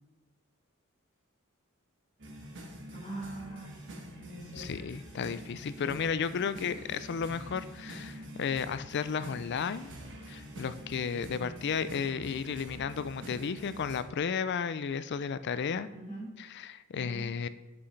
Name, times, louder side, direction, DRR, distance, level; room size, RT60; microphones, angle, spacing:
sound 1, 2.2-14.0, equal, 60° right, 1.4 m, -46 dB
voice 1, 2.9-3.8 4.2-4.7 5.7-6.2 11.3-11.5 15.9-16.3 16.9-17.2, right 2 dB, 35° left, -3 dB, 2.7 m, -43 dB
voice 2, 4.5-9.9 10.3-15.9 16.4-17.5, left 6 dB, 55° left, 14 dB, 0.4 m, -33 dB
9.6 x 6.2 x 3.3 m, 1.3 s
head